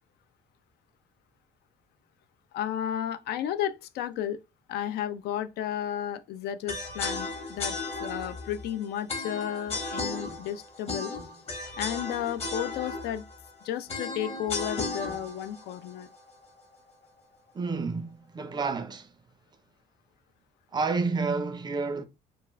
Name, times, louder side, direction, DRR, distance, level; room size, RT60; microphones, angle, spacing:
voice 1, 2.5-4.4 4.7-11.1 11.8-13.2 13.6-16.1, left 10 dB, 70° left, 0.4 m, -33 dB
sound 1, 6.7-16.8, left 3 dB, 40° left, 1.0 m, -35 dB
voice 2, 17.5-19.1 20.7-22.0, right 4 dB, 25° right, 0.4 m, -30 dB
2.3 x 2.3 x 3.1 m
cardioid pair, 110°, 17 cm